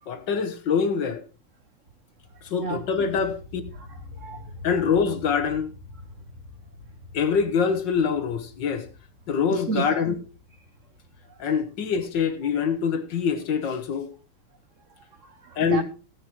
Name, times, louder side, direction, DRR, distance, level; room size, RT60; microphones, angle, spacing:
voice 1, 0.1-1.2 2.4-3.6 4.6-5.7 7.1-8.9 9.3-10.1 11.4-14.1 15.6-15.8, left 6 dB, 60° left, 1.7 m, -24 dB
sound 1, 2.2-13.7, left 2 dB, 35° right, 2.4 m, -46 dB
voice 2, 2.3-3.2 3.7-4.5 9.5-10.0 11.2-11.6 15.0-15.8, right 5 dB, 75° right, 0.7 m, -34 dB
16.0 x 9.6 x 3.1 m
omnidirectional pair, 2.4 m